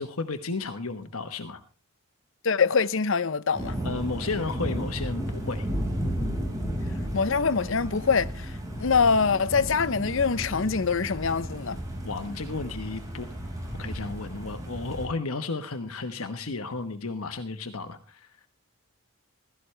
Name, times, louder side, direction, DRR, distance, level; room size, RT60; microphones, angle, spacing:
voice 1, 0.0-1.6 3.8-5.7 12.0-13.3 13.7-18.3, left 3 dB, 80° left, 1.2 m, -33 dB
voice 2, 2.4-3.8 7.1-8.5 8.8-11.8, left 5 dB, 60° left, 0.6 m, -24 dB
sound 1, 3.5-15.1, equal, 15° right, 5.2 m, -33 dB
16.0 x 14.5 x 3.3 m
head